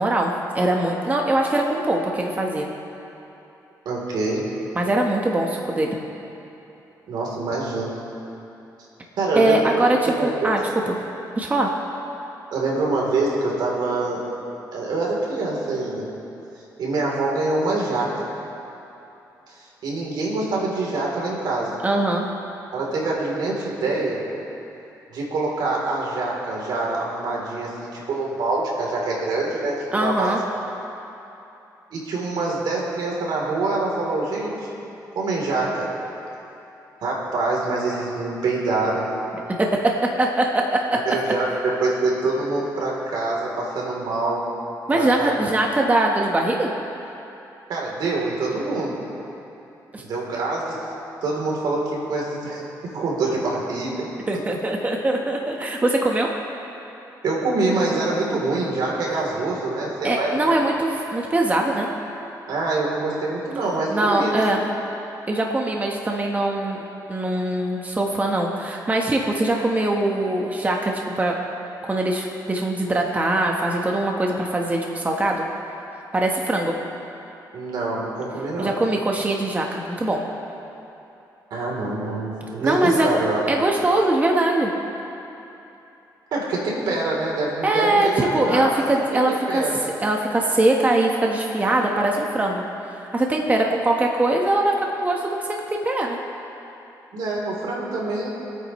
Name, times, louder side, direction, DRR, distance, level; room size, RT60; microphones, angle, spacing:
voice 1, 0.0-2.7 4.7-6.0 9.3-11.0 11.4-11.7 21.8-22.3 29.9-30.4 39.6-39.7 40.2-40.6 44.9-46.7 49.9-50.0 54.3-56.3 60.0-61.9 63.9-64.6 65.3-66.8 67.1-71.4 71.8-75.4 76.1-76.7 78.6-80.2 82.6-83.1 83.5-84.7 87.6-89.6 90.0-92.6 93.1-96.2, right 2 dB, 20° right, 0 dB, 1.2 m, -22 dB
voice 2, 3.8-4.5 7.1-7.9 9.2-9.7 10.0-10.5 12.5-14.2 14.7-16.1 16.8-18.2 19.5-21.8 22.7-24.2 25.1-30.3 31.9-34.7 35.1-35.9 37.0-39.1 41.0-44.4 44.9-45.3 47.7-48.9 50.0-50.9 51.2-54.1 57.2-60.5 62.5-64.5 77.5-78.7 81.5-83.4 86.3-88.9 89.3-89.8 97.1-98.3, right 2 dB, 80° right, -3 dB, 3.4 m, -25 dB
26.5 x 9.1 x 3.2 m, 2.9 s
cardioid pair, 100°, 7 cm